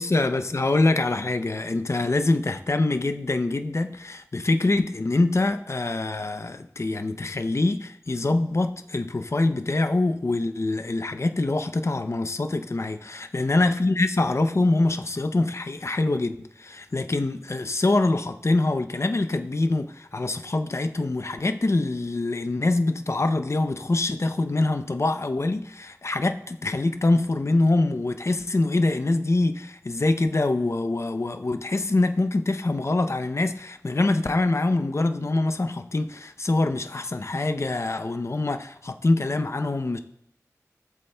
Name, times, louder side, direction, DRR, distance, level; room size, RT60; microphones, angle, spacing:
voice 1, 0.0-40.0, left 2 dB, 50° left, 0.5 m, -24 dB
17.0 x 7.9 x 2.2 m
wide cardioid pair, 55°, 6 cm